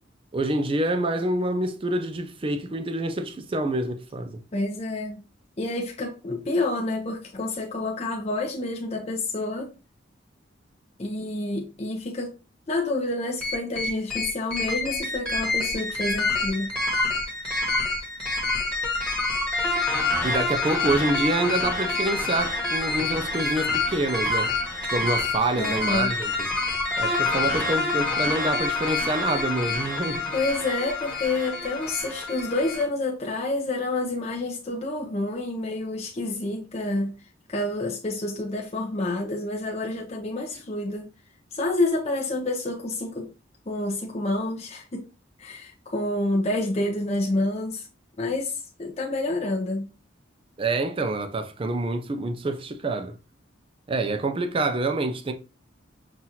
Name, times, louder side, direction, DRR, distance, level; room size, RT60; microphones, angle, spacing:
voice 1, 0.3-4.4 20.2-24.5 24.9-26.3 27.0-30.3 50.6-53.1 53.9-55.3, right 2 dB, 30° right, 0.4 m, -27 dB
voice 2, 4.5-5.2 5.6-9.7 11.0-12.3 12.7-16.7 25.6-26.1 30.3-37.1 37.5-41.1 41.5-43.3 43.7-45.1 45.4-47.9 48.2-49.8, left 2 dB, 35° left, 0.6 m, -28 dB
sound 1, 13.4-32.8, left 2 dB, 5° left, 1.2 m, -27 dB
5.7 x 2.5 x 2.8 m
head